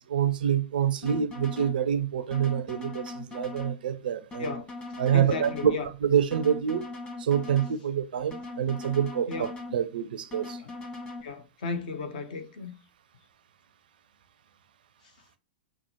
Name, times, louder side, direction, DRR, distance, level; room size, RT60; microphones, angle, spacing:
voice 1, 0.1-4.5 5.0-6.8 7.2-10.6, right 8 dB, 60° right, 0.5 m, -27 dB
sound 1, 1.0-1.8 2.3-3.8 4.3-5.8 6.3-7.8 8.3-9.8 10.3-11.2, left 2 dB, 20° left, 1.3 m, -39 dB
voice 2, 5.1-5.8 9.3-9.5 11.2-12.7, left 4 dB, 55° left, 0.8 m, -34 dB
5.6 x 2.1 x 2.8 m
figure-of-eight pair, 100°, 5 cm